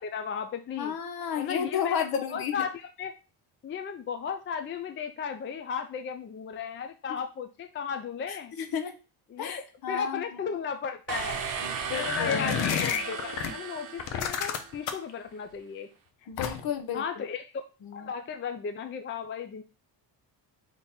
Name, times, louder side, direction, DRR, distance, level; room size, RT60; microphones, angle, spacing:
voice 1, 0.0-1.0 1.4-3.1 3.6-8.5 9.3-11.4 11.9-15.9 16.9-17.5 17.9-19.6, left 6 dB, 30° left, 7 dB, 0.4 m, -35 dB
voice 2, 0.8-2.7 8.3-8.9 9.4-10.2 11.6-12.6 16.3-17.2 17.8-18.1, left 8 dB, 55° left, 9 dB, 0.8 m, -33 dB
sound 1, 11.1-14.8, right 6 dB, 45° right, 0.8 m, -36 dB
sound 2, 11.9-13.5 14.0-15.1 16.4-16.8, left 8 dB, 90° left, 0.7 m, -30 dB
3.7 x 3.0 x 4.2 m, 0.32 s
cardioid pair, 105°, 44 cm